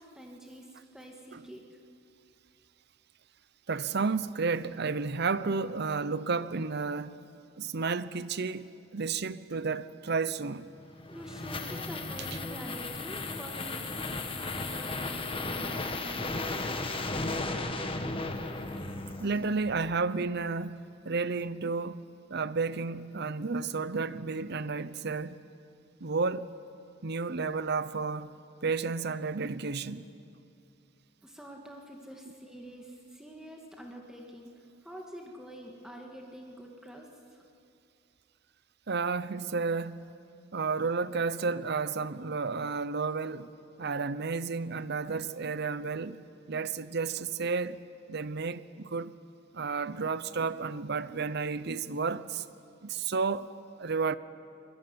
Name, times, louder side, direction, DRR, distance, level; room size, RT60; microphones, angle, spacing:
voice 1, 0.0-1.8 11.1-16.7 31.2-37.4, equal, 5° right, 2.3 m, -46 dB
voice 2, 3.7-7.2 7.6-10.7 19.2-25.4 26.0-26.6 27.0-28.3 28.6-30.0 38.9-40.1 40.5-43.5 43.8-46.2 46.5-49.1 49.5-52.4 52.8-53.5 53.8-54.2, right 4 dB, 55° right, 0.8 m, -32 dB
sound 1, 10.8-19.7, left 2 dB, 30° left, 1.5 m, -35 dB
24.0 x 21.5 x 9.7 m
head